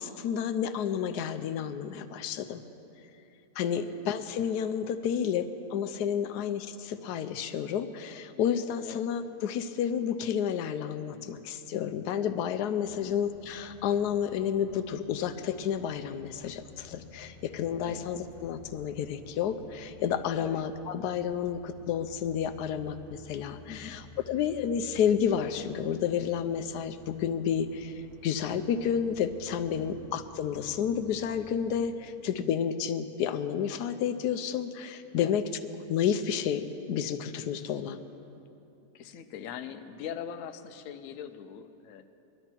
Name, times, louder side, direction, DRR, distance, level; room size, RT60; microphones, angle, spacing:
voice 1, 0.0-2.6 3.6-24.0 24.3-35.4 35.9-38.0, left 8 dB, 90° left, 10 dB, 1.2 m, -30 dB
voice 2, 3.7-4.1 6.2-6.5 8.8-9.1 12.9-13.2 17.8-18.1 20.4-20.6 23.7-24.0 29.8-30.1 35.2-35.3 38.9-42.0, left 8 dB, 65° left, 8 dB, 1.0 m, -42 dB
sound 1, 12.8-31.8, left 1 dB, 85° right, 4.2 m, -53 dB
21.5 x 12.5 x 4.5 m, 2.8 s
omnidirectional pair, 1.7 m